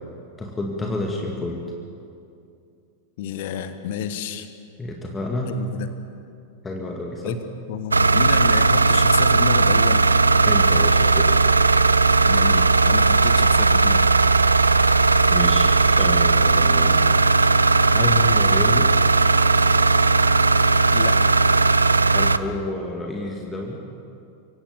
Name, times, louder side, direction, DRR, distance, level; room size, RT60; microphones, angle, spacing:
voice 1, 0.4-1.6 4.8-5.6 6.6-7.4 10.4-11.4 15.3-17.4 17.9-18.9 22.1-23.8, left 2 dB, 15° left, 0 dB, 2.2 m, -29 dB
voice 2, 3.2-4.5 5.4-5.9 7.2-7.4 7.7-10.0 12.2-14.0 20.9-21.4, left 9 dB, 50° left, 10 dB, 1.4 m, -30 dB
sound 1, 7.9-22.4, right 3 dB, 80° right, 0.5 m, -17 dB
25.0 x 17.0 x 7.1 m, 2.5 s
figure-of-eight pair, 90°, 0 cm